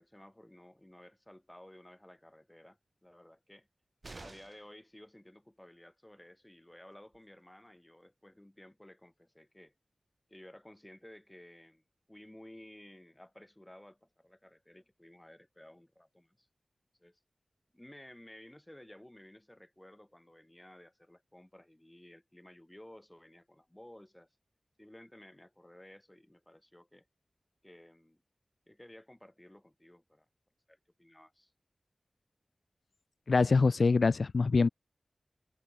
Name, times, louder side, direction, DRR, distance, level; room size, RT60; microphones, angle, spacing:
voice 1, 0.0-3.7 4.2-9.7 10.3-11.8 12.1-16.5 17.0-17.2 17.7-24.3 24.8-27.1 27.6-28.2 28.7-30.3 30.7-31.5, left 1 dB, 15° left, 3.1 m, -55 dB
sound 1, 4.0-4.8 6.7-6.8 7.1-7.2, right 3 dB, 50° right, 0.9 m, -49 dB
voice 2, 33.3-34.7, left 4 dB, 75° left, 0.4 m, -24 dB
wide cardioid pair, 65°, 0 cm